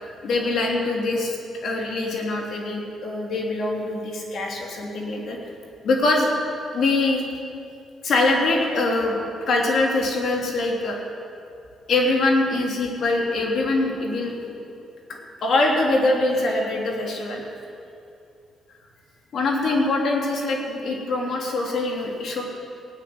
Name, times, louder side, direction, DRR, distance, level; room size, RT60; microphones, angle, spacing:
voice 1, 0.2-5.4 5.8-6.3 6.7-7.2 8.0-9.1 9.5-11.0 11.9-14.6 15.1-17.4 19.3-22.4, left 2 dB, 60° left, 0 dB, 3.2 m, -23 dB
17.5 x 9.2 x 7.8 m, 2.6 s
cardioid pair, 90°, 0 cm